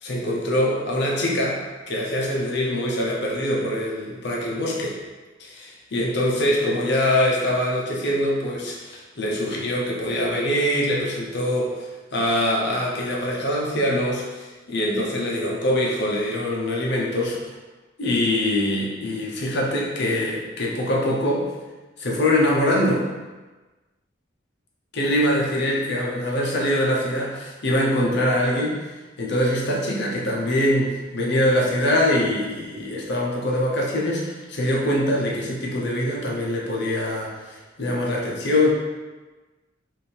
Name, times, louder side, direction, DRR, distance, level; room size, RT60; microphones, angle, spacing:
voice 1, 0.0-1.6 1.9-5.0 5.4-17.4 18.0-21.5 22.0-23.1 24.9-28.8 29.2-38.7, left 1 dB, 65° left, -3 dB, 0.9 m, -23 dB
3.6 x 2.7 x 4.3 m, 1.2 s
head